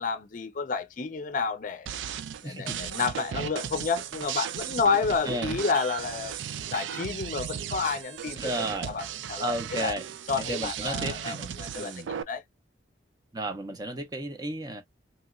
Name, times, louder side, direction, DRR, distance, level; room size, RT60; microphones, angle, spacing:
voice 1, 0.0-2.0 2.4-9.9 10.3-12.4, left 5 dB, 45° left, 0.5 m, -30 dB
sound 1, 1.9-12.2, right 9 dB, 80° right, 0.3 m, -36 dB
voice 2, 2.4-2.8 5.3-5.6 8.4-8.9 9.4-10.0 10.4-12.1 13.3-14.8, right 2 dB, 20° right, 0.5 m, -33 dB
2.9 x 2.8 x 2.3 m
head